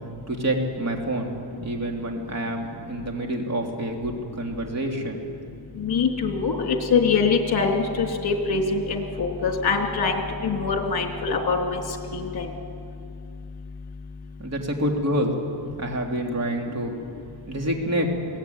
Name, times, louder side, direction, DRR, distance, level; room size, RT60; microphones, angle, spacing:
voice 1, 0.3-5.4 14.4-15.3 15.8-16.9 17.5-18.1, right 1 dB, 35° right, 1 dB, 3.1 m, -27 dB
voice 2, 5.8-11.8 12.1-12.5, left 5 dB, 55° left, 2 dB, 3.0 m, -24 dB
22.0 x 17.0 x 9.4 m, 2.4 s
wide cardioid pair, 140°, 44 cm